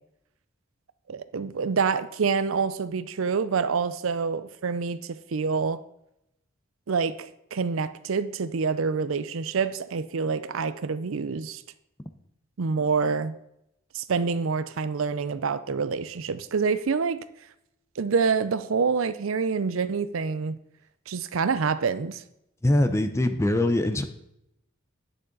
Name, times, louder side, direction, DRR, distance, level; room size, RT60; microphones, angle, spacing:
voice 1, 1.1-5.8 6.9-11.6 12.6-13.3 13.9-17.2 18.0-20.6 21.1-22.2, right 5 dB, 80° right, 14 dB, 0.5 m, -27 dB
voice 2, 22.6-24.0, left 1 dB, 15° left, 9 dB, 0.6 m, -22 dB
10.0 x 6.6 x 3.9 m, 0.80 s
head